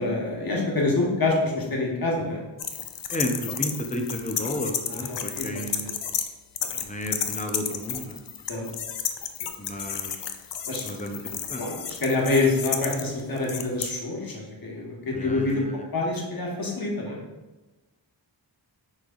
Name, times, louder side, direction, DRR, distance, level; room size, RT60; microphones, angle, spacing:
voice 1, 0.0-2.4 4.9-5.5 5.8-5.9 8.5-8.7 10.6-10.9 11.6-15.6 15.9-17.2, left 2 dB, 50° left, -2 dB, 1.3 m, -26 dB
sound 1, 2.6-6.3 6.6-13.8, left 8 dB, 65° left, 0.5 m, -32 dB
voice 2, 3.1-5.9 6.8-8.2 9.6-10.1 10.8-11.6 15.1-15.7, left 1 dB, 15° left, 3 dB, 0.6 m, -32 dB
6.2 x 3.2 x 2.4 m, 1.1 s
cardioid pair, 45°, 47 cm